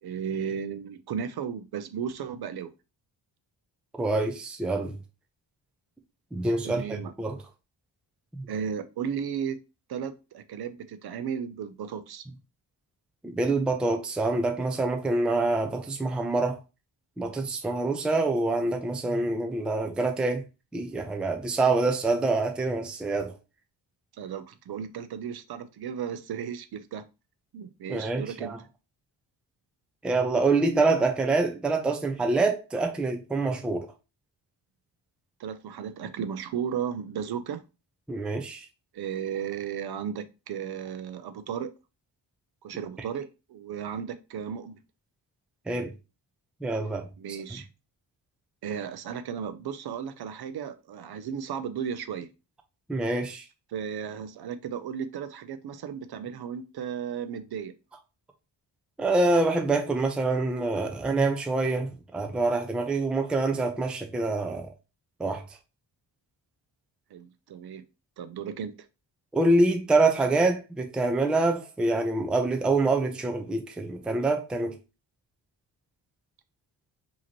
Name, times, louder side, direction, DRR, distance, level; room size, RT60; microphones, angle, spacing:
voice 1, 0.0-2.7 6.6-7.1 8.5-9.6 9.9-12.3 24.2-27.0 27.5-28.6 35.4-37.6 38.9-41.7 42.6-44.8 47.2-47.7 48.6-52.3 53.7-57.7 67.1-67.8 68.2-68.7, right 8 dB, 55° right, 0.5 m, -35 dB
voice 2, 4.0-5.0 6.3-7.4 8.4-8.5 13.2-16.6 17.2-20.4 20.7-23.3 27.9-28.6 30.0-33.9 38.1-38.7 45.7-45.9 46.6-47.1 52.9-53.4 59.0-64.7 65.2-65.4 69.3-74.8, right 2 dB, ahead, 0.4 m, -26 dB
5.0 x 2.9 x 2.9 m
wide cardioid pair, 160°, 46 cm